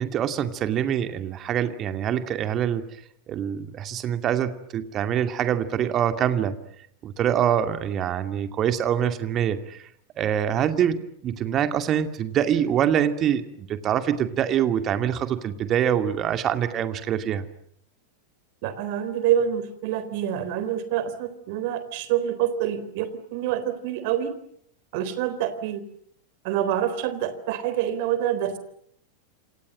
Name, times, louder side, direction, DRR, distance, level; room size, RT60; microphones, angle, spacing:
voice 1, 0.0-2.8 3.3-6.6 7.0-9.8 10.2-17.4, right 9 dB, 30° right, 9 dB, 2.4 m, -25 dB
voice 2, 18.6-24.3 24.9-25.8 26.4-28.6, right 10 dB, 50° right, 13 dB, 3.8 m, -26 dB
28.5 x 27.0 x 7.7 m, 0.69 s
figure-of-eight pair, 90°, 0 cm